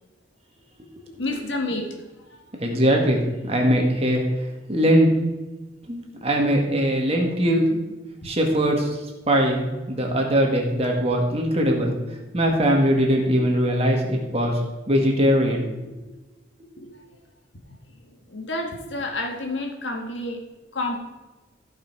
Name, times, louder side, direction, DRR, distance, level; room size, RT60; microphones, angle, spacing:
voice 1, 1.2-1.9 16.8-16.9 18.3-20.4 20.7-21.0, left 2 dB, 80° left, 2 dB, 1.8 m, -29 dB
voice 2, 2.6-4.2 4.7-5.1 5.9-7.8 8.2-8.9 9.3-11.9 12.3-14.6 14.9-15.7, equal, 35° right, 1 dB, 1.8 m, -21 dB
14.5 x 5.6 x 4.7 m, 1.1 s
head